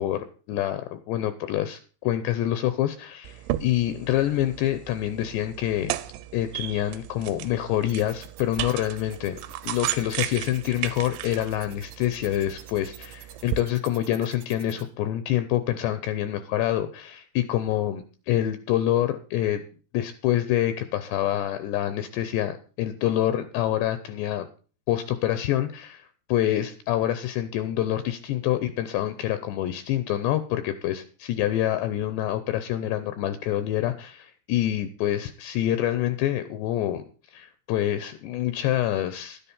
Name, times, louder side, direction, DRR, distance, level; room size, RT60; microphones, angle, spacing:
voice 1, 0.0-6.0 6.3-19.6 19.9-24.5 24.9-37.1 37.3-39.4, left 12 dB, 75° left, 11 dB, 2.7 m, -26 dB
sound 1, 3.3-13.6, right 14 dB, 85° right, 3.1 m, -35 dB
sound 2, 7.9-14.8, right 10 dB, 65° right, 3.0 m, -47 dB
12.0 x 10.0 x 5.5 m, 0.38 s
omnidirectional pair, 5.4 m